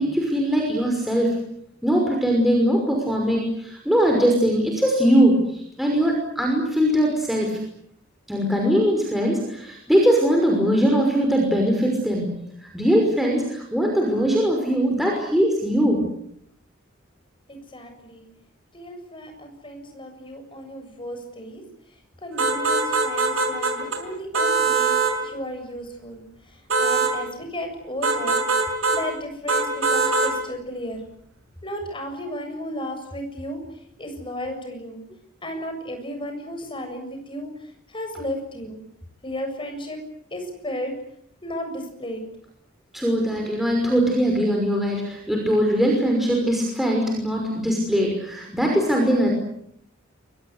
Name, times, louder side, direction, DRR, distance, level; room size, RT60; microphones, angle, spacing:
voice 1, 0.0-1.4 1.8-5.4 5.8-7.6 8.3-12.3 12.7-16.0 42.9-49.3, equal, ahead, 0 dB, 5.8 m, -21 dB
voice 2, 17.5-18.3 18.7-21.6 22.2-24.9 25.2-26.2 26.8-28.4 28.9-31.0 31.6-33.6 34.0-35.0 35.4-37.5 37.9-38.8 39.2-40.0 40.3-40.9 41.4-42.2, equal, 25° left, 5 dB, 7.4 m, -34 dB
sound 1, 22.4-24.0 24.3-25.2 26.7-27.2 28.0-29.0 29.5-30.4, right 3 dB, 80° right, 6.0 m, -22 dB
28.5 x 24.5 x 8.3 m, 0.71 s
head